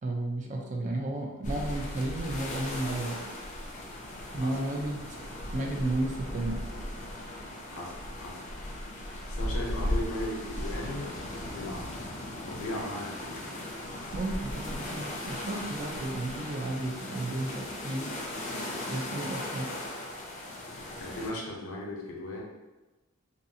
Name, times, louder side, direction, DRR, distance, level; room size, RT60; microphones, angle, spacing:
voice 1, 0.0-3.2 4.3-5.0 5.5-6.6 14.1-18.1 18.9-19.7, right 2 dB, 35° right, 1 dB, 0.4 m, -33 dB
sound 1, 1.4-21.3, left 1 dB, 35° left, 0.4 m, -37 dB
voice 2, 7.7-8.5 9.3-11.9 12.5-13.4 21.0-22.4, left 1 dB, 90° left, -1 dB, 0.6 m, -37 dB
2.7 x 2.3 x 2.6 m, 1.1 s
head